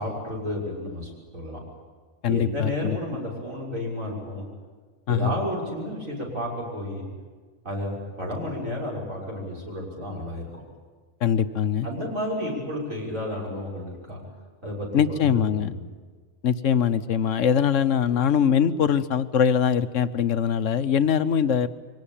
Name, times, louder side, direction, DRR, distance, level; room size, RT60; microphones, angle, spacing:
voice 1, 0.0-1.6 2.3-4.4 5.1-7.1 7.6-10.6 11.8-14.2 14.6-15.8, left 1 dB, 70° right, -2 dB, 6.7 m, -32 dB
voice 2, 2.2-3.0 5.1-5.3 11.2-11.9 14.9-15.7 16.4-21.7, left 8 dB, 65° left, 12 dB, 1.2 m, -22 dB
23.5 x 18.5 x 8.9 m, 1.5 s
omnidirectional pair, 1.4 m